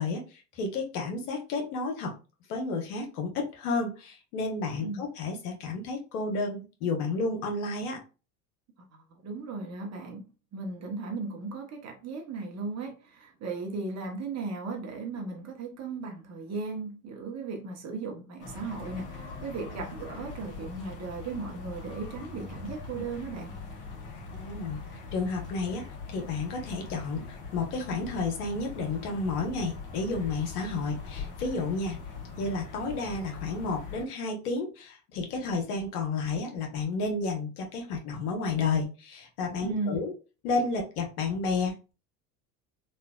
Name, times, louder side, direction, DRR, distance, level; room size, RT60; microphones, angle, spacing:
voice 1, 0.0-2.1 2.5-8.0 24.4-24.8 25.1-25.8 26.1-32.0 32.4-40.1 40.4-41.9, left 3 dB, 70° left, 1.1 m, -31 dB
voice 2, 9.2-10.2 10.5-23.5 39.6-40.0, right 3 dB, 35° right, 0.9 m, -36 dB
sound 1, 18.4-34.1, left 4 dB, 40° left, 1.1 m, -42 dB
3.2 x 2.4 x 2.2 m
hypercardioid pair, 75°, 48 cm